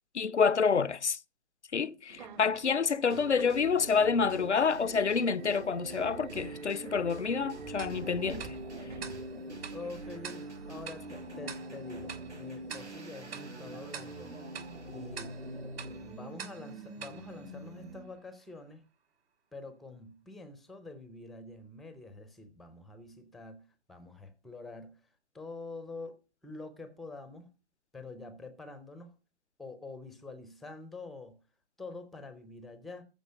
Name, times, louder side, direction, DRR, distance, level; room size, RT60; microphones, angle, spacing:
voice 1, 0.1-1.2 1.7-8.6, left 5 dB, 85° left, 0.6 m, -28 dB
Subway metro underground, 2.1-9.6, right 8 dB, 45° right, 1.1 m, -50 dB
voice 2, 2.2-2.5 9.7-14.3 14.9-15.4 15.9-18.8 19.5-25.0 25.3-26.2 26.4-27.5 27.9-29.1 29.6-31.4 31.8-33.0, left 3 dB, ahead, 0.5 m, -46 dB
sound 1, 3.1-18.2, right 1 dB, 85° right, 6.2 m, -43 dB
Tick-tock, 7.8-18.2, right 7 dB, 60° right, 2.5 m, -48 dB
14.5 x 5.3 x 7.6 m
figure-of-eight pair, 125°, 34 cm